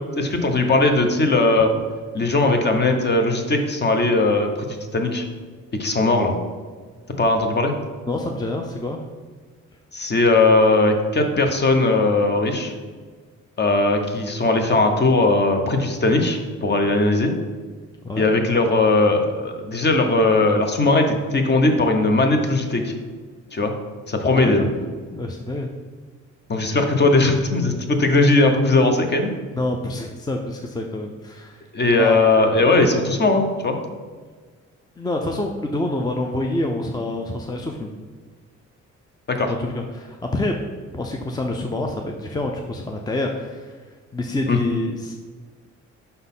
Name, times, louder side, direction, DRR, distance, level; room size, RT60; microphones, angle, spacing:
voice 1, 0.2-1.7 2.1-5.3 5.7-6.3 7.2-7.7 9.9-12.7 13.6-17.3 18.2-22.9 23.5-23.7 24.1-24.7 26.5-29.3 31.7-33.8 39.3-39.5 44.5-44.6, left 2 dB, 35° left, 5 dB, 1.0 m, -19 dB
voice 2, 8.1-9.0 18.0-18.3 24.3-24.6 25.1-25.7 29.5-31.6 32.0-32.2 35.0-37.9 39.5-40.6 40.9-43.8 44.1-45.1, left 2 dB, 15° left, 3 dB, 0.5 m, -27 dB
5.5 x 4.0 x 5.5 m, 1.5 s
cardioid pair, 90°, 30 cm